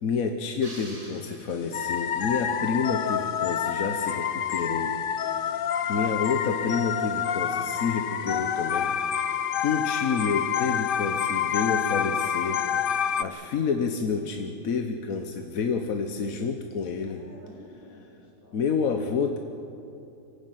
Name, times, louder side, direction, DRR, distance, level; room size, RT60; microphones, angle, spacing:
voice 1, 0.0-5.0 5.4-9.0 9.6-12.6 13.2-17.2 18.5-19.4, left 5 dB, 60° left, 5 dB, 1.4 m, -29 dB
sound 1, 0.6-2.2, right 1 dB, 20° right, 2.8 m, -46 dB
sound 2, 1.7-13.2, left 8 dB, 80° left, 0.4 m, -28 dB
voice 2, 17.0-18.8, equal, 30° left, -7 dB, 4.5 m, -51 dB
24.5 x 15.5 x 9.2 m, 2.7 s
omnidirectional pair, 1.8 m